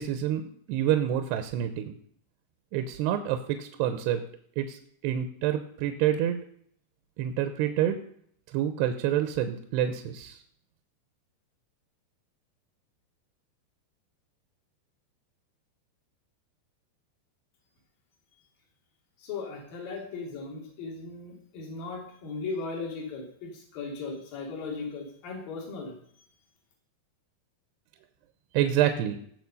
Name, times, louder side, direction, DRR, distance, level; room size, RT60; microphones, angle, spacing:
voice 1, 0.0-1.9 2.7-4.2 4.6-6.4 7.2-8.0 8.5-10.4 28.5-29.2, right 11 dB, 80° right, 8 dB, 2.9 m, -27 dB
voice 2, 19.2-26.0, left 4 dB, 55° left, 0 dB, 4.6 m, -37 dB
18.0 x 6.9 x 5.5 m, 0.64 s
omnidirectional pair, 4.9 m